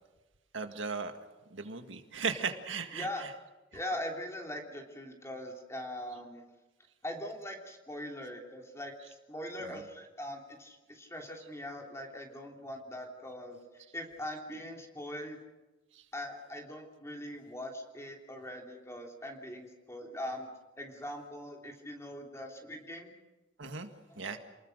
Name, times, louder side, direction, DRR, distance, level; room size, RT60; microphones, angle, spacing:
voice 1, 0.5-1.1 1.5-3.3 9.6-9.8 15.9-16.0 23.6-23.9 24.2-24.4, right 5 dB, 75° right, 6 dB, 1.9 m, -37 dB
voice 2, 2.9-3.3 3.7-6.4 7.0-13.6 13.9-15.4 16.1-20.5 20.8-23.1 24.1-24.2, left 1 dB, 15° left, 1 dB, 3.2 m, -41 dB
28.5 x 20.5 x 6.5 m, 1.1 s
head